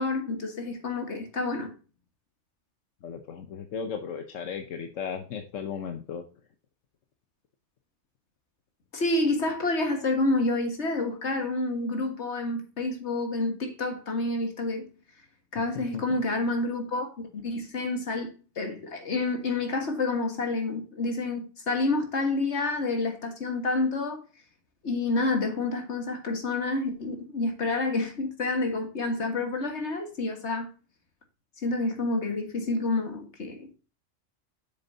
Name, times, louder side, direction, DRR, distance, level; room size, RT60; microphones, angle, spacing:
voice 1, 0.0-1.7 8.9-14.9 15.5-24.2 24.8-30.7 31.6-33.9, left 2 dB, 65° left, 1.9 m, -29 dB
voice 2, 3.0-6.2 15.7-16.2, left 6 dB, 85° left, 1.2 m, -36 dB
8.2 x 6.7 x 2.7 m
omnidirectional pair, 1.3 m